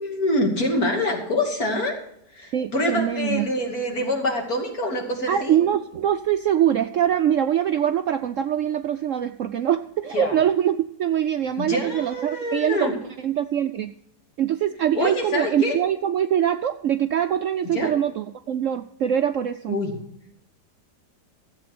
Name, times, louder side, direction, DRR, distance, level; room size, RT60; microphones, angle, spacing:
voice 1, 0.0-1.9 2.3-5.6 10.1-10.4 11.6-12.9 14.9-15.8 17.6-17.9 19.7-19.9, left 1 dB, 60° left, 0 dB, 3.0 m, -25 dB
voice 2, 2.5-3.5 5.3-12.9 13.2-13.9 14.4-19.8, right 10 dB, 65° right, 9 dB, 0.8 m, -23 dB
14.5 x 8.3 x 5.9 m, 0.75 s
omnidirectional pair, 1.8 m